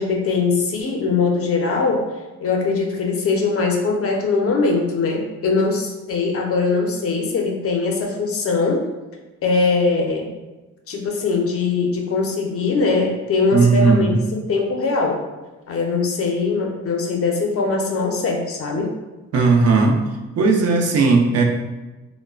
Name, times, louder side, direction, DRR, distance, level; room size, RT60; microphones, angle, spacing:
voice 1, 0.0-2.1 2.4-8.9 9.4-10.3 10.9-15.2 15.7-19.0, left 4 dB, 50° left, 1 dB, 0.5 m, -21 dB
voice 2, 13.5-14.2 19.3-20.0 20.4-21.4, right 4 dB, 55° right, 2 dB, 0.5 m, -16 dB
3.0 x 2.0 x 2.3 m, 1.1 s
cardioid pair, 90°, 30 cm